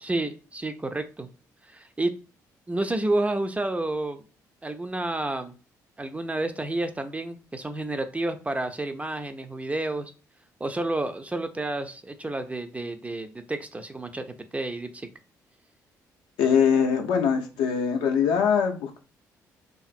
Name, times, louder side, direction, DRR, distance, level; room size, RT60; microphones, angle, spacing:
voice 1, 0.0-1.3 1.7-2.1 2.7-4.2 4.6-5.5 6.0-10.1 10.6-15.1, right 2 dB, 15° right, 8 dB, 0.3 m, -30 dB
voice 2, 16.4-19.0, left 7 dB, 65° left, 4 dB, 0.5 m, -22 dB
2.5 x 2.5 x 2.4 m, 0.35 s
figure-of-eight pair, 45°, 9 cm